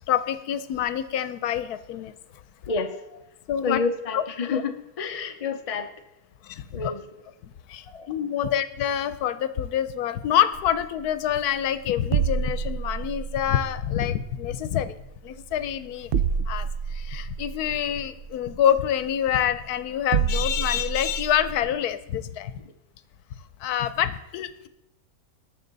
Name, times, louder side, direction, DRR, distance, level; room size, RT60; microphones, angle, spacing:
voice 1, 0.1-2.1 3.5-3.8 4.1-4.6 6.4-6.9 7.4-16.1 16.5-22.5 23.6-24.7, left 10 dB, 85° left, 13 dB, 1.2 m, -26 dB
voice 2, 2.7-3.2 3.6-5.9 6.7-7.0 7.9-8.1, left 4 dB, 30° left, 6 dB, 0.7 m, -29 dB
sound 1, 10.5-21.7, right 6 dB, 85° right, 0.5 m, -30 dB
19.0 x 6.5 x 4.0 m, 0.87 s
omnidirectional pair, 1.6 m